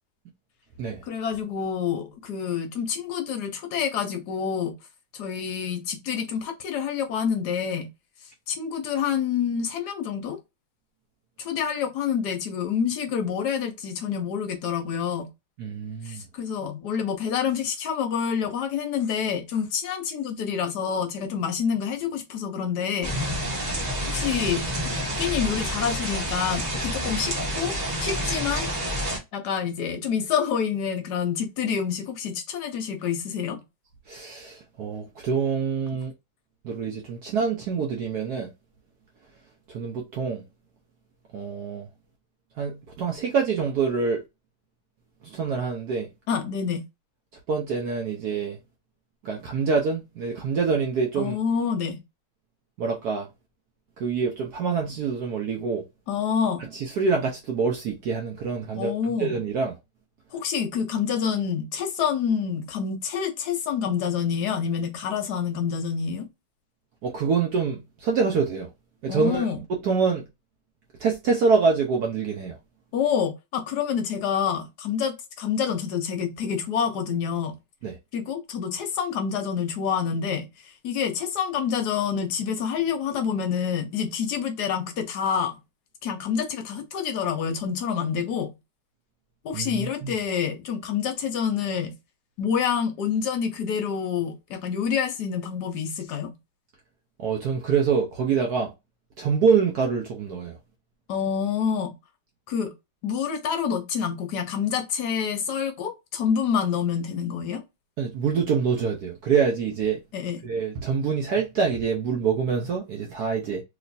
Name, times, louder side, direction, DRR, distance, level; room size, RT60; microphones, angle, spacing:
voice 1, 1.0-4.7 5.1-7.9 8.5-10.4 11.4-15.3 16.0-23.2 24.0-27.7 28.0-28.7 29.3-33.6 46.3-46.8 51.2-52.0 56.1-56.6 58.7-59.4 60.3-66.3 69.1-69.6 72.9-77.6 78.1-85.6 86.0-88.5 89.4-92.0 92.4-96.4 101.1-102.0 102.5-102.7 103.0-107.6 110.1-110.5, left 7 dB, 65° left, 1.0 m, -27 dB
voice 2, 15.6-16.2 34.1-36.1 36.6-38.5 39.7-40.4 41.3-41.9 42.6-44.2 45.2-46.1 47.5-48.6 49.2-51.4 52.8-53.3 54.0-55.8 56.6-58.9 59.2-59.7 67.0-68.7 69.0-70.2 71.0-72.6 77.8-77.9 89.5-90.1 97.2-98.7 99.2-100.6 108.0-110.0 110.4-113.6, right 5 dB, 75° right, 0.9 m, -25 dB
sound 1, 23.0-29.2, equal, 30° right, 0.9 m, -28 dB
3.1 x 3.0 x 2.6 m
omnidirectional pair, 2.3 m